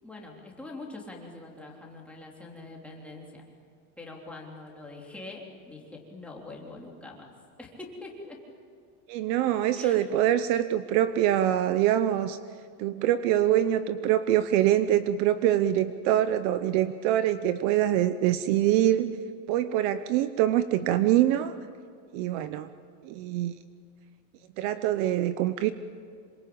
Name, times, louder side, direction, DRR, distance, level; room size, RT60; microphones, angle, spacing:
voice 1, 0.0-3.4 4.0-7.3 7.6-8.4 9.8-10.0, left 2 dB, 5° left, -2 dB, 3.5 m, -44 dB
voice 2, 9.1-12.4 12.8-19.1 19.5-21.5 22.1-22.7 23.0-23.5 24.6-25.7, right 12 dB, 50° right, 12 dB, 0.9 m, -24 dB
26.5 x 23.5 x 8.9 m, 2.3 s
cardioid pair, 170°, 47 cm